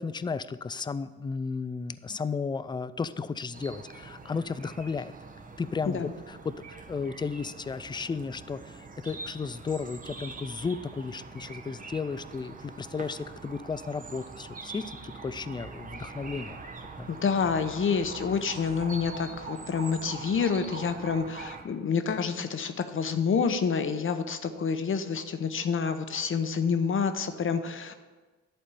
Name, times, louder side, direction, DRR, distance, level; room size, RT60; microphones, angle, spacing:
voice 1, 0.0-5.1 5.6-6.0 6.3-16.6 17.0-17.1, left 5 dB, 15° left, 15 dB, 0.3 m, -34 dB
sound 1, 3.5-21.6, right 4 dB, 25° right, 1.0 m, -43 dB
voice 2, 17.1-27.9, left 6 dB, 45° left, 9 dB, 0.8 m, -28 dB
11.0 x 4.3 x 6.8 m, 1.3 s
cardioid pair, 90°, 30 cm